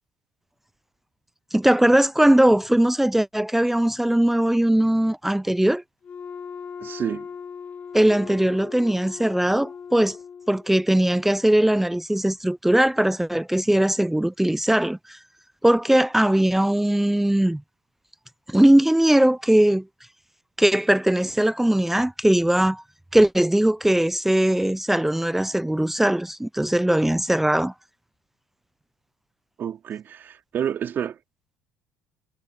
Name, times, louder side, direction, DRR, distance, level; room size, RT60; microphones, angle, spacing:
voice 1, 1.5-5.8 7.9-10.2 10.5-15.2 15.6-17.6 18.5-19.9 20.6-22.8 23.1-27.7, right 1 dB, 5° right, 0.4 m, -20 dB
Wind instrument woodwind instrument, 6.0-10.8, left 6 dB, 40° left, 6.3 m, -39 dB
voice 2, 6.8-7.3 29.6-31.2, right 9 dB, 50° right, 3.5 m, -29 dB
supercardioid pair, 85°, 4 cm